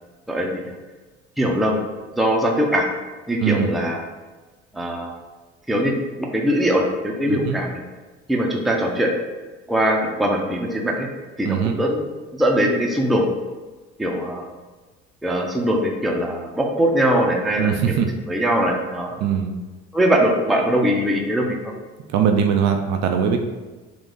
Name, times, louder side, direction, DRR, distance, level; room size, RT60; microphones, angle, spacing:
voice 1, 0.3-0.7 1.4-1.8 2.2-2.9 3.3-4.0 4.7-5.1 5.7-7.8 8.3-9.1 9.7-11.1 11.4-11.5 11.8-13.2 14.0-14.5 15.2-17.7 18.3-19.2 19.9-21.7, equal, ahead, -1 dB, 0.6 m, -21 dB
voice 2, 3.4-3.7 7.3-7.6 11.4-11.8 17.6-18.1 19.2-19.5 22.1-23.4, right 7 dB, 60° right, 4 dB, 0.5 m, -21 dB
3.9 x 2.4 x 3.7 m, 1.3 s
supercardioid pair, 85°, 32 cm